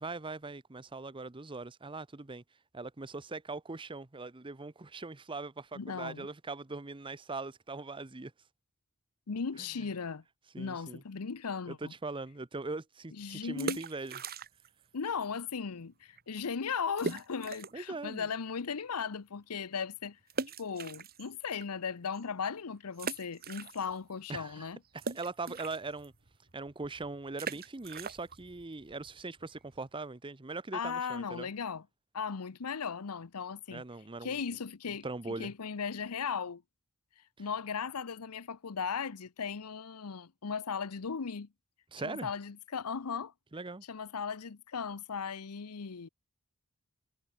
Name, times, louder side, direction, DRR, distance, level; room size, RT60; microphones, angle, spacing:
voice 1, 0.0-2.4 2.7-8.3 9.6-9.9 10.5-11.0 11.7-14.2 17.7-18.3 24.3-26.1 26.5-31.5 33.7-34.4 35.0-35.5 41.9-42.3 43.5-43.8, right 3 dB, 20° right, 0.8 m, -41 dB
voice 2, 5.7-6.3 9.3-10.2 10.6-11.9 13.2-13.8 14.9-20.2 20.6-24.8 30.7-31.8 32.1-33.8 34.2-36.6 37.4-41.5 42.0-43.3 43.9-46.1, left 6 dB, 85° left, 0.8 m, -37 dB
sound 1, 13.5-14.8 15.1-15.2 15.8-15.9 16.2-16.3 17.0-17.9 18.4-18.5 20.3-21.6 22.1-22.2 22.9-24.1 24.4-29.9, right 4 dB, 45° right, 1.9 m, -41 dB
head